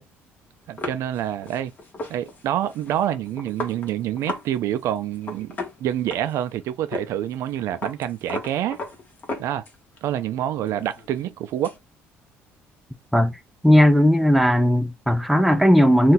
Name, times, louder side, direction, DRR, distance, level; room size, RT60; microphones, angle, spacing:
voice 1, 0.7-1.7 2.1-8.8 9.4-9.6 10.0-11.7, right 11 dB, 70° right, 0.4 m, -27 dB
sound 1, 0.8-4.5 4.7-4.9 5.1-6.5 6.9-7.1 7.3-10.0 10.4-11.8, left 2 dB, 35° left, 1.1 m, -35 dB
voice 2, 13.6-16.1, equal, ahead, 0.5 m, -16 dB
2.6 x 2.3 x 3.8 m
cardioid pair, 110°, 5 cm